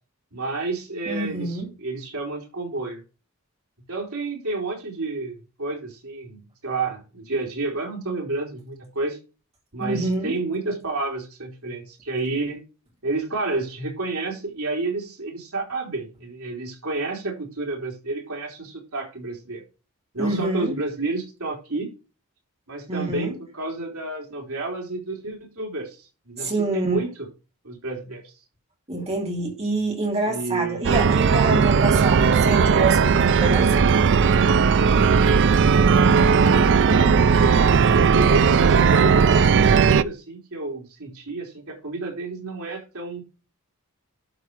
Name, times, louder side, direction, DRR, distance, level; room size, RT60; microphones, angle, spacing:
voice 1, 0.3-3.0 3.9-9.2 9.7-12.7 13.0-19.6 20.1-21.9 22.7-27.3 27.6-28.3 30.3-30.9 31.6-32.5 36.8-43.3, right 3 dB, 75° right, 3.8 m, -30 dB
voice 2, 1.1-1.7 9.8-10.4 20.2-20.8 22.9-23.3 26.4-27.0 28.9-33.9, right 2 dB, 30° right, 2.8 m, -26 dB
sound 1, 30.8-40.0, right 5 dB, 55° right, 0.4 m, -17 dB
12.0 x 4.6 x 4.8 m
head